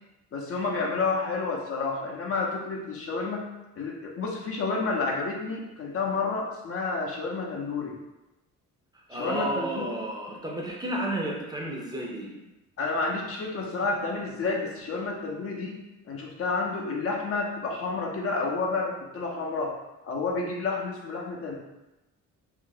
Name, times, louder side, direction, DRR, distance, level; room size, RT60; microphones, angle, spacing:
voice 1, 0.3-3.4 3.8-8.0 9.1-9.9 12.8-15.8 16.1-19.8 20.0-21.5, left 3 dB, 50° left, -1 dB, 0.6 m, -30 dB
voice 2, 8.9-12.4, right 1 dB, 15° right, -2 dB, 0.5 m, -32 dB
2.7 x 2.1 x 3.8 m, 0.99 s
cardioid pair, 90°, 30 cm